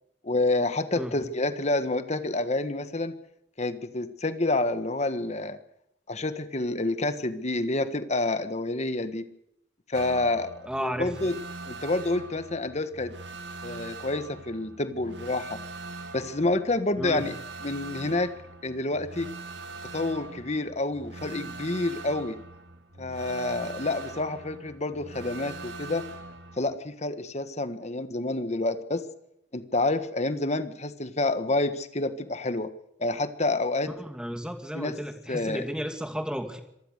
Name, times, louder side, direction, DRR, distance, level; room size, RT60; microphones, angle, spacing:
voice 1, 0.2-3.1 3.6-5.6 6.1-9.3 9.9-11.4 11.7-13.1 13.6-15.6 16.1-18.3 18.6-19.3 19.9-22.4 23.0-26.1 26.6-29.1 29.5-32.7 33.0-33.9 34.7-35.0 35.3-35.6, left 2 dB, 40° left, 11 dB, 1.5 m, -28 dB
sound 1, 9.9-26.6, right 3 dB, 75° right, 2.1 m, -42 dB
voice 2, 10.7-11.1 17.0-17.3 34.0-36.6, equal, 5° right, 6 dB, 2.6 m, -33 dB
25.5 x 19.0 x 6.7 m, 0.78 s
head